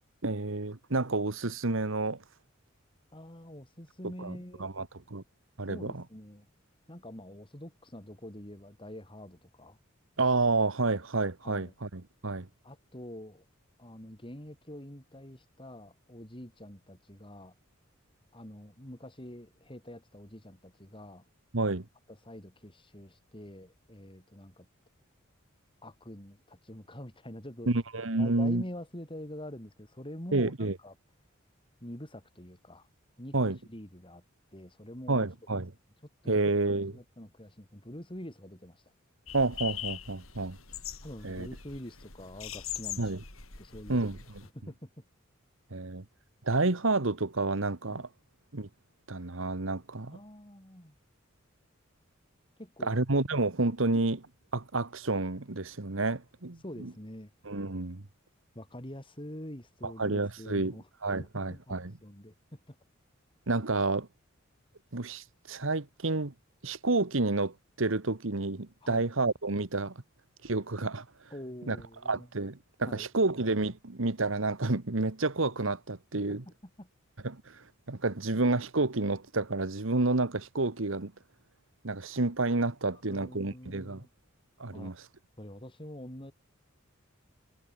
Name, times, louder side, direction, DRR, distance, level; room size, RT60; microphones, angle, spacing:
voice 1, 0.2-2.2 4.2-5.2 5.6-6.0 10.2-12.5 21.5-21.9 27.7-28.6 30.3-30.8 33.3-33.6 35.1-35.7 36.3-37.0 39.3-40.6 41.2-41.5 43.0-43.2 43.9-44.2 45.7-46.0 46.4-48.1 48.5-48.7 49.1-50.2 52.8-54.3 54.5-56.9 57.4-58.0 59.8-60.7 61.0-61.9 63.5-64.1 64.9-66.3 66.6-69.9 70.4-71.0 71.7-71.8 72.0-76.4 77.2-81.1 81.8-84.0 84.6-84.9, right 3 dB, 65° right, 1.5 m, -30 dB
voice 2, 3.1-4.9 5.7-6.5 6.9-9.8 11.4-11.7 12.6-13.4 13.8-17.5 18.3-21.2 22.1-24.7 25.8-27.7 28.2-30.9 31.8-32.9 33.2-34.2 34.5-35.3 36.2-38.8 41.0-43.1 43.6-44.1 44.5-45.0 47.9-48.1 50.1-50.9 52.6-53.0 53.8-53.9 56.6-57.3 58.5-60.9 61.2-62.8 68.8-69.0 71.3-72.3 72.8-73.1 76.4-76.9 82.9-84.1 84.7-84.9 85.4-86.3, left 1 dB, 25° left, 5.0 m, -46 dB
sound 1, 39.3-44.5, left 10 dB, 80° left, 5.8 m, -42 dB
head